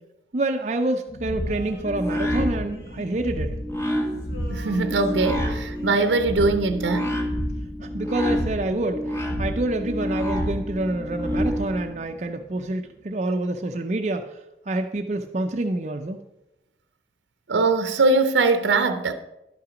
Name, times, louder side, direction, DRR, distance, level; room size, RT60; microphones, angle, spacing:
voice 1, 0.3-3.5 7.8-9.0 9.4-16.2, right 2 dB, 40° right, 0.4 m, -27 dB
sound 1, 1.1-12.9, equal, 50° left, 0.9 m, -33 dB
Male singing, 1.4-3.9 4.2-6.3, equal, 65° left, 1.8 m, -45 dB
sound 2, 1.8-11.8, left 1 dB, 15° left, 1.0 m, -29 dB
voice 2, 4.5-7.2 17.5-19.1, right 3 dB, 85° right, 0.6 m, -21 dB
11.5 x 5.8 x 5.0 m
head